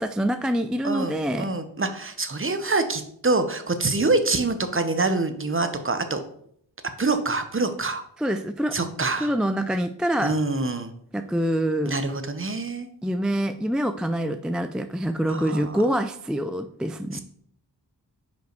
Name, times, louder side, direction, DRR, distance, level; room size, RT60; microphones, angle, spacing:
voice 1, 0.0-1.5 8.2-8.8 9.2-10.3 11.1-11.9 13.0-17.2, equal, ahead, 8 dB, 0.3 m, -25 dB
voice 2, 0.8-6.2 7.0-8.0 8.7-9.3 10.2-10.9 11.9-12.9 15.3-15.8 17.1-17.2, right 3 dB, 30° right, 9 dB, 0.9 m, -25 dB
5.2 x 5.1 x 4.5 m, 0.66 s
cardioid pair, 45°, 45 cm